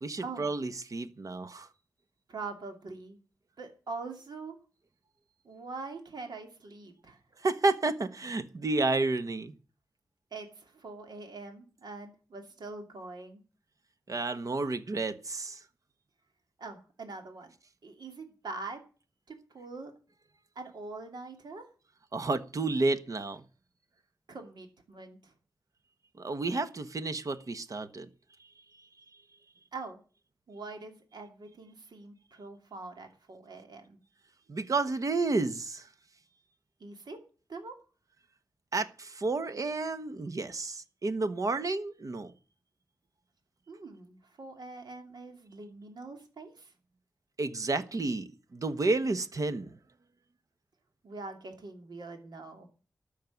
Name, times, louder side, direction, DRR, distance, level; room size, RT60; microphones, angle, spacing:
voice 1, 0.0-1.7 7.4-9.5 14.1-15.6 22.1-23.4 26.2-28.1 34.5-35.9 38.7-42.3 47.4-49.8, right 3 dB, 50° right, 1.2 m, -31 dB
voice 2, 2.3-3.2 3.6-4.6 5.4-7.2 10.3-13.4 16.6-17.5 17.8-18.8 19.3-19.9 20.5-21.7 24.3-25.3 29.7-30.0 30.5-34.0 36.8-37.2 37.5-37.8 43.7-46.7 51.0-52.7, right 3 dB, 75° right, 2.7 m, -43 dB
13.0 x 6.6 x 9.4 m
wide cardioid pair, 130°, 7 cm